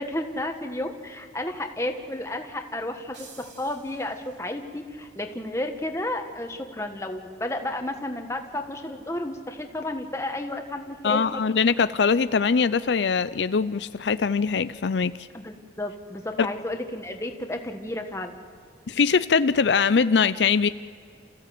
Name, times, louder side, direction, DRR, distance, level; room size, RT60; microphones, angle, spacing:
voice 1, 0.0-11.4 15.3-18.4, left 1 dB, 15° left, 4 dB, 1.5 m, -32 dB
sound 1, 3.1-4.8, right 5 dB, 80° right, 3.2 m, -51 dB
voice 2, 11.0-15.1 16.4-16.5 18.9-20.7, left 5 dB, 80° left, 14 dB, 0.5 m, -22 dB
29.0 x 15.5 x 7.8 m, 2.3 s
head